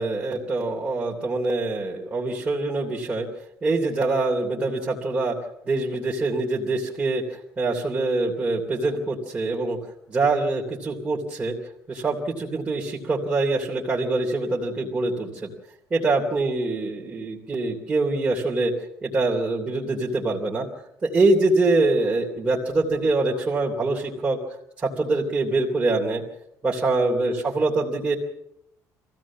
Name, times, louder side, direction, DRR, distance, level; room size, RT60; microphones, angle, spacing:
voice 1, 0.0-3.3 3.6-5.4 5.6-9.8 10.1-11.5 11.9-15.5 15.9-18.7 19.0-20.7 21.0-24.4 24.8-26.2 26.6-28.1, right 2 dB, 20° right, -4 dB, 3.1 m, -24 dB
23.5 x 16.0 x 7.3 m, 0.79 s
cardioid pair, 135°, 6 cm